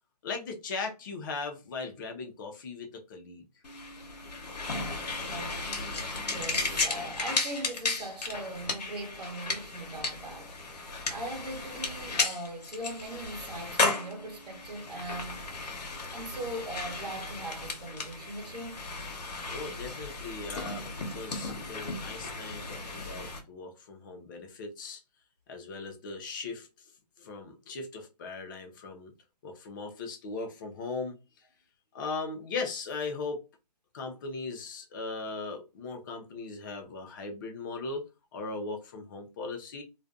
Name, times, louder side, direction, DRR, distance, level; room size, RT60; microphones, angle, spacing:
voice 1, 0.2-3.4 19.5-25.0 25.5-26.7 27.2-29.1 29.4-31.2 31.9-33.4 33.9-38.1 38.3-39.8, left 3 dB, 30° left, 0.5 m, -38 dB
sound 1, 3.6-23.4, left 3 dB, 75° left, 0.7 m, -35 dB
voice 2, 5.3-5.7 6.0-15.5 16.1-18.8, right 1 dB, 70° right, 1.0 m, -40 dB
2.4 x 2.2 x 2.3 m
hypercardioid pair, 145°, 21 cm